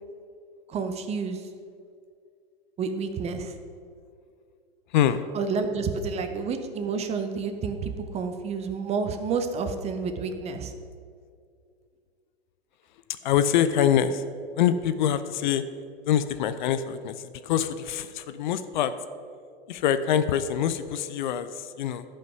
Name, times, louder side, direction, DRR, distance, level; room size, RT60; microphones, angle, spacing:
voice 1, 0.7-1.5 2.8-3.5 5.3-10.7, right 5 dB, 20° right, 7 dB, 0.7 m, -30 dB
voice 2, 4.9-5.2 13.2-14.2 14.5-15.6 16.1-18.9 19.7-22.0, left 9 dB, 50° left, 12 dB, 0.6 m, -25 dB
12.0 x 5.5 x 5.9 m, 2.3 s
figure-of-eight pair, 105°, 31 cm